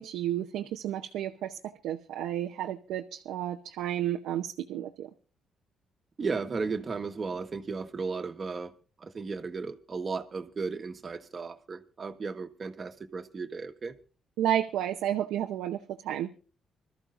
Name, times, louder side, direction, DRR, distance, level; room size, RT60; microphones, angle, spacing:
voice 1, 0.0-5.1 14.4-16.3, right 11 dB, 90° right, 0.8 m, -32 dB
voice 2, 6.2-8.7 9.0-13.9, right 4 dB, 35° right, 1.4 m, -35 dB
25.5 x 13.5 x 2.6 m
cardioid pair, 90°, 0 cm